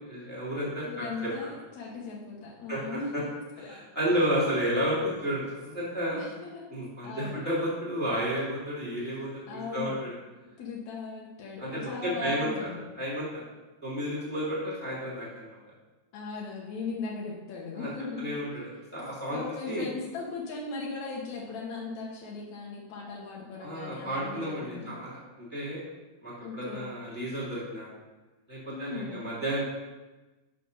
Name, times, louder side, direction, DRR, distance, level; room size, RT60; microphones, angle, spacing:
voice 1, 0.0-1.3 2.7-2.8 3.7-6.2 6.7-10.1 11.6-12.7 13.0-13.4 13.8-15.6 17.8-17.9 18.2-18.6 18.9-19.8 23.6-25.8 26.2-27.9 28.5-29.6, equal, 5° left, -7 dB, 1.7 m, -32 dB
voice 2, 0.6-3.3 3.6-3.8 4.4-4.6 6.1-6.7 7.0-7.4 9.5-10.0 10.6-12.8 16.1-18.3 19.3-24.9 26.4-26.9 28.7-29.3, left 3 dB, 75° left, -3 dB, 1.7 m, -38 dB
6.8 x 6.3 x 5.5 m, 1.1 s
omnidirectional pair, 5.0 m